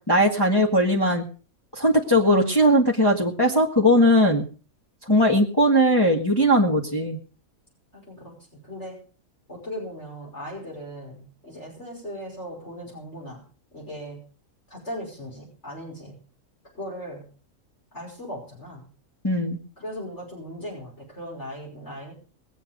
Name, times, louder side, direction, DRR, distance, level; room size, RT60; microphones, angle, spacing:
voice 1, 0.1-1.2 1.7-4.4 5.1-7.2 19.2-19.6, equal, 15° left, -3 dB, 1.7 m, -19 dB
voice 2, 7.9-9.0 9.5-13.4 13.7-14.2 14.7-16.2 16.7-17.3 17.9-18.9 19.8-22.1, equal, 50° left, -3 dB, 6.1 m, -38 dB
21.0 x 8.5 x 5.2 m, 0.39 s
omnidirectional pair, 1.5 m